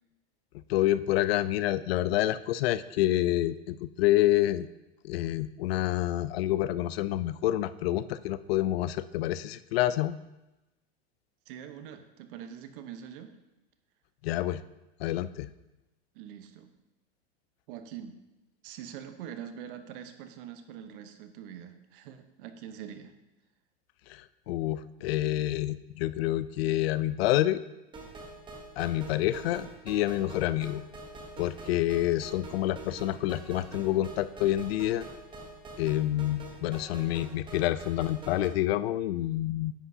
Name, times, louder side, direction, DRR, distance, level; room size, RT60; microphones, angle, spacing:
voice 1, 0.5-4.7 5.0-10.2 14.2-14.6 15.0-15.5 24.1-27.6 28.8-30.8 31.4-35.1 35.8-39.7, left 14 dB, 70° left, 15 dB, 0.5 m, -28 dB
voice 2, 11.5-13.3 16.1-16.7 17.7-18.2 18.6-23.1, right 9 dB, 55° right, 8 dB, 0.9 m, -44 dB
sound 1, 27.9-38.5, right 2 dB, 15° right, 0.9 m, -45 dB
9.9 x 8.2 x 2.7 m, 0.98 s
supercardioid pair, 140°, 32 cm